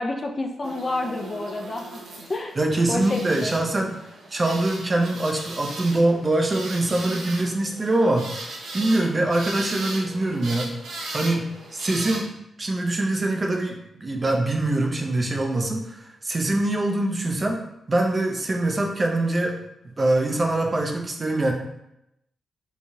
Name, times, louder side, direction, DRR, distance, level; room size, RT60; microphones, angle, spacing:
voice 1, 0.0-2.0 2.3-2.6 2.9-3.6, left 2 dB, 35° left, 3 dB, 0.3 m, -29 dB
sound 1, 0.6-12.2, right 2 dB, 90° right, 0.6 m, -38 dB
voice 2, 2.6-3.9 4.3-8.3 8.7-10.7 11.1-12.3 12.6-17.6 17.9-19.5 20.0-21.5, right 2 dB, 30° right, 2 dB, 0.4 m, -23 dB
3.1 x 2.2 x 2.6 m, 0.82 s
cardioid pair, 85°, 0 cm